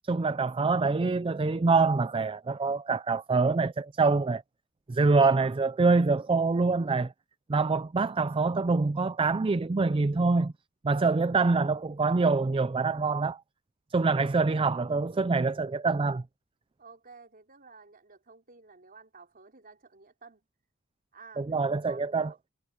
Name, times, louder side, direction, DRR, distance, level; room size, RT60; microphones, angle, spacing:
voice 1, 0.0-4.4 4.9-7.1 7.5-10.5 10.8-13.4 13.9-16.2 21.4-22.3, right 4 dB, 25° right, 0.4 m, -25 dB
voice 2, 11.1-11.4 14.2-14.3 16.8-20.4 21.1-22.4, right 4 dB, 45° right, 4.7 m, -53 dB
head